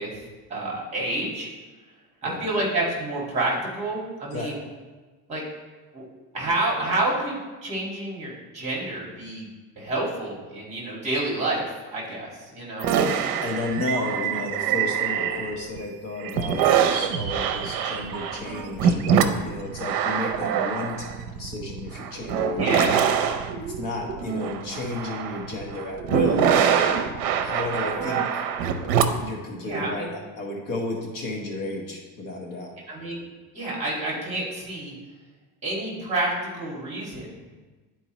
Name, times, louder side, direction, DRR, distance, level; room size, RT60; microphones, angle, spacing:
voice 1, 0.0-1.5 2.2-4.6 5.3-5.4 5.9-6.0 6.3-9.5 9.8-12.9 22.6-23.0 29.5-30.0 32.9-33.2 33.5-34.9 35.6-37.4, right 2 dB, 15° right, -4 dB, 1.9 m, -29 dB
sound 1, 12.8-15.8 16.2-29.3, right 8 dB, 60° right, 0.6 m, -24 dB
voice 2, 13.4-23.0 23.3-26.5 27.4-28.2 29.2-32.7, left 2 dB, 50° left, 0 dB, 1.1 m, -33 dB
10.5 x 4.4 x 3.0 m, 1.3 s
cardioid pair, 170°, 41 cm